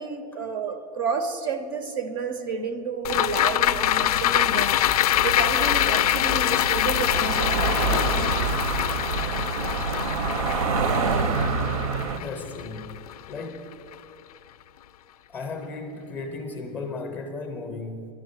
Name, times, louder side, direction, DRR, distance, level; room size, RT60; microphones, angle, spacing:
voice 1, 0.0-4.8 5.2-8.2, right 5 dB, 35° right, 0.6 m, -31 dB
sound 1, 3.0-13.6 13.9-14.0, left 13 dB, 70° left, 0.4 m, -24 dB
sound 2, 3.6-12.2, right 4 dB, 60° right, 0.9 m, -28 dB
sound 3, 7.6-12.7, right 2 dB, 85° right, 1.3 m, -45 dB
voice 2, 12.1-13.0 13.3-13.9 15.3-18.1, left 3 dB, 10° left, 0.7 m, -35 dB
11.0 x 8.7 x 7.9 m
supercardioid pair, 180°, 20 cm